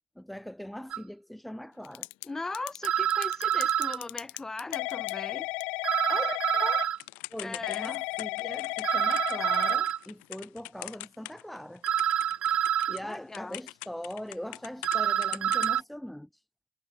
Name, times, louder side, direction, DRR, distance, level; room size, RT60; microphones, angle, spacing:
voice 1, 0.2-2.1 6.1-6.8 7.3-11.8 12.9-16.3, equal, 5° left, 3.0 m, -41 dB
sound 1, 0.9-1.0 2.8-4.0 5.8-7.0 8.8-10.0 11.8-13.0 14.8-15.8, right 10 dB, 60° right, 0.7 m, -27 dB
Typing / Telephone, 1.8-2.3 2.5-11.6 11.9-15.0 15.2-15.8, left 26 dB, 85° left, 0.4 m, -35 dB
voice 2, 2.2-5.5 7.4-7.9 13.0-13.6, left 3 dB, 20° left, 4.8 m, -39 dB
supercardioid pair, 75°, 2 cm